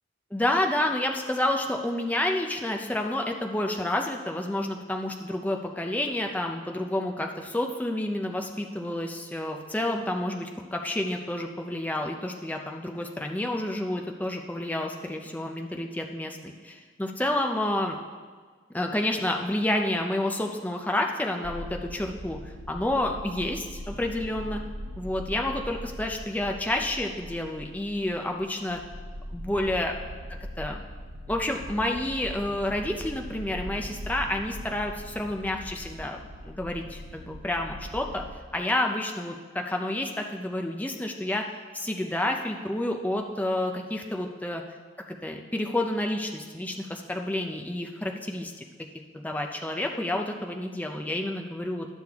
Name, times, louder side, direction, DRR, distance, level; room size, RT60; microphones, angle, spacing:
voice 1, 0.3-18.0 18.7-24.6 25.0-28.8 29.3-29.9 30.6-30.8 31.3-38.2 38.5-41.5 41.7-44.6 45.2-48.5 49.1-51.9, left 1 dB, 10° left, 2 dB, 0.5 m, -29 dB
sound 1, 21.4-38.4, equal, 75° right, 1.0 m, -41 dB
12.5 x 6.7 x 3.5 m, 1.5 s
head